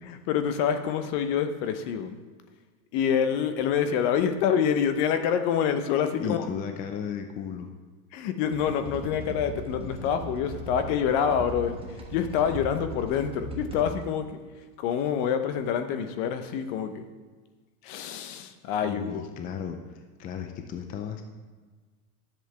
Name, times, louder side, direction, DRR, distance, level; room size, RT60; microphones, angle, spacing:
voice 1, 0.0-2.2 2.9-6.5 8.1-14.4 14.8-17.1 17.8-19.2, left 8 dB, 50° left, 9 dB, 0.9 m, -27 dB
voice 2, 6.2-7.7 18.8-21.2, left 7 dB, 20° left, 6 dB, 0.4 m, -35 dB
sound 1, 8.4-14.0, right 2 dB, 10° right, 1.1 m, -39 dB
10.5 x 7.3 x 3.4 m, 1.4 s
supercardioid pair, 120°, 46 cm